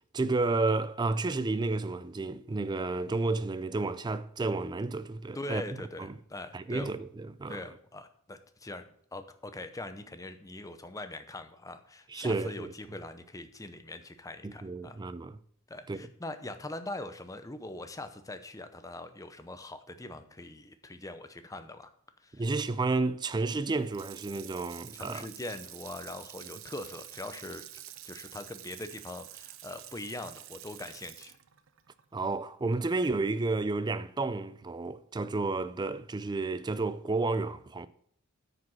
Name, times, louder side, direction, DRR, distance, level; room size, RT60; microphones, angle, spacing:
voice 1, 0.1-5.6 6.0-6.2 6.5-7.6 12.1-12.7 14.4-15.4 15.9-16.1 22.4-25.3 32.1-37.9, right 3 dB, 20° right, 0.4 m, -31 dB
voice 2, 5.3-6.9 7.5-15.0 15.7-21.9 22.2-22.4 24.9-27.6 28.0-31.4, left 2 dB, 15° left, 0.7 m, -42 dB
Water tap faucet / Sink (filling or washing), 23.7-33.0 33.4-33.5, right 13 dB, 65° right, 0.6 m, -48 dB
9.5 x 5.0 x 6.3 m
head